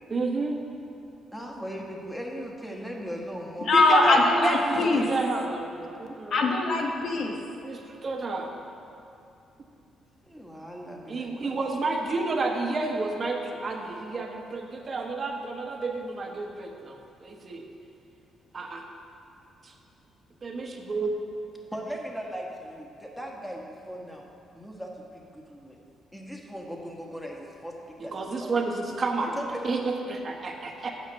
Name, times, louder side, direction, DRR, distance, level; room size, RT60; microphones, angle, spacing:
voice 1, 0.1-0.5 3.7-6.3 7.6-8.5 11.1-17.6 18.5-18.8 19.6-19.7 20.4-21.1 28.0-29.4 29.6-30.9, right 3 dB, 40° right, 2 dB, 1.0 m, -30 dB
voice 2, 1.3-4.2 4.7-5.1 10.2-11.6 21.7-24.3 24.5-25.8 26.1-28.5 29.2-29.7, equal, 5° left, 0 dB, 1.3 m, -38 dB
voice 3, 3.7-5.1 6.3-7.4, left 3 dB, 60° left, 2 dB, 1.0 m, -22 dB
8.3 x 5.7 x 6.6 m, 2.7 s
cardioid pair, 90°, 0 cm